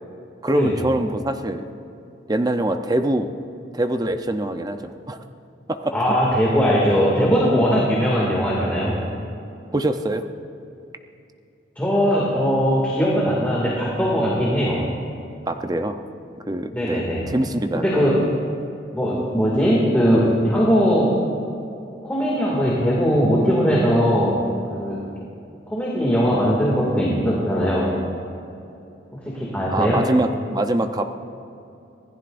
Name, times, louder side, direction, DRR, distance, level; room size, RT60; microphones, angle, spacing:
voice 1, 0.4-1.6 2.3-3.3 3.7-5.2 5.7-5.9 9.7-10.3 15.5-16.0 16.5-18.0 29.7-31.1, right 1 dB, 20° right, 7 dB, 0.6 m, -24 dB
voice 2, 5.9-9.0 11.8-14.8 16.7-17.3 17.7-18.2 18.9-21.1 22.0-24.4 24.7-25.0 25.7-27.9 29.1-30.1, equal, 10° left, -5 dB, 2.3 m, -20 dB
25.5 x 16.5 x 2.6 m, 2.7 s
head